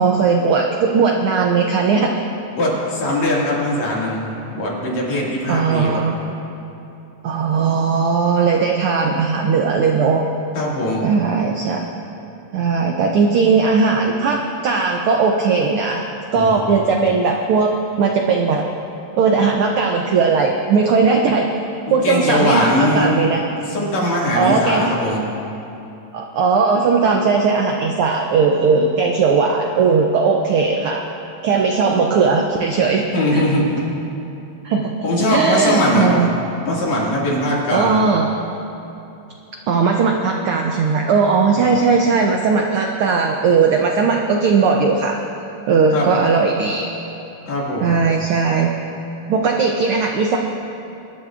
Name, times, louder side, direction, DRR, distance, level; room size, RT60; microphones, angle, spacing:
voice 1, 0.0-2.1 5.5-6.2 7.2-10.2 11.0-11.8 12.5-16.0 16.3-18.7 19.1-21.5 21.9-23.4 24.3-24.8 26.1-31.0 31.4-33.0 33.3-33.4 34.6-34.9 35.3-36.3 37.7-38.3 39.7-45.2 45.7-46.9 47.8-48.7 49.3-50.4, right 5 dB, 85° right, 2 dB, 1.2 m, -18 dB
voice 2, 2.6-6.0 10.6-11.1 16.3-16.9 21.9-23.2 23.7-25.2 33.1-33.9 35.0-36.3 36.7-38.0 41.6-41.8 45.9-46.1 47.5-48.0, left 1 dB, 70° left, -4 dB, 3.5 m, -20 dB
23.0 x 11.5 x 2.5 m, 2.8 s
omnidirectional pair, 3.3 m